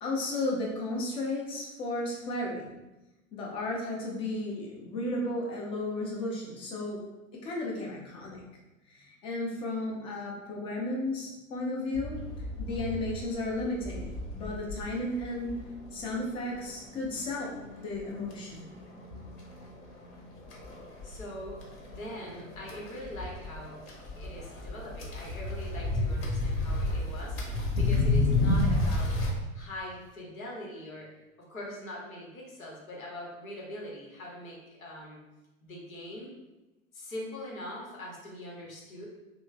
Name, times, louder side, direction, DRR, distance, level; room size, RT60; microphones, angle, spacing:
voice 1, 0.0-2.7 3.3-7.1 7.3-8.4 8.9-15.6 15.9-18.7, left 2 dB, 15° left, -2 dB, 0.3 m, -34 dB
sound 1, 11.9-29.3, left 2 dB, 45° left, 0.9 m, -32 dB
voice 2, 21.0-23.8 24.2-31.1 31.4-35.2 35.6-36.3 36.9-39.1, left 1 dB, 80° left, -3 dB, 0.9 m, -42 dB
3.0 x 2.1 x 3.2 m, 1.0 s
figure-of-eight pair, 90°, 41 cm